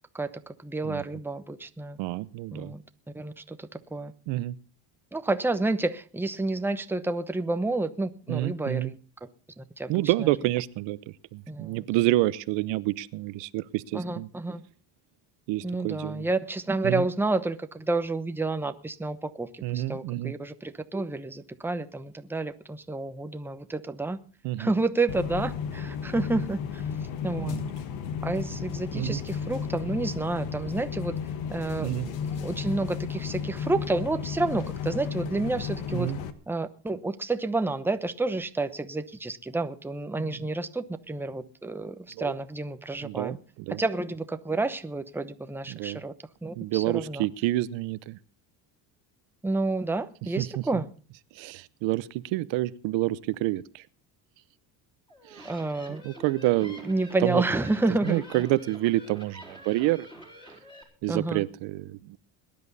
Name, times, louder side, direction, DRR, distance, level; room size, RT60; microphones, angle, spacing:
voice 1, 0.1-2.0 2.5-2.8 3.1-4.1 5.1-9.0 9.6-10.3 11.5-11.8 13.9-14.6 15.6-24.2 24.6-26.8 27.2-27.6 28.2-31.2 31.5-36.1 36.5-43.4 43.7-46.1 46.4-47.3 49.4-50.9 55.4-56.0 56.8-58.4 61.1-61.4, right 2 dB, 5° right, 0.9 m, -30 dB
voice 2, 2.0-2.7 4.3-4.6 8.3-8.9 9.9-11.0 11.3-14.3 15.5-16.3 16.8-17.1 19.6-20.3 24.4-24.7 27.4-27.6 28.9-29.2 31.8-32.1 35.9-36.2 40.2-40.4 42.1-42.3 43.0-43.8 45.7-46.0 46.6-48.2 50.4-50.8 51.3-53.8 55.3-55.5 56.0-56.9 57.2-57.4 58.0-60.1 61.0-62.2, right 17 dB, 80° right, 0.9 m, -28 dB
sound 1, 25.1-36.3, left 7 dB, 85° left, 1.6 m, -33 dB
sound 2, 55.1-60.8, equal, 10° left, 4.4 m, -47 dB
21.5 x 10.5 x 4.0 m
cardioid pair, 120°, 44 cm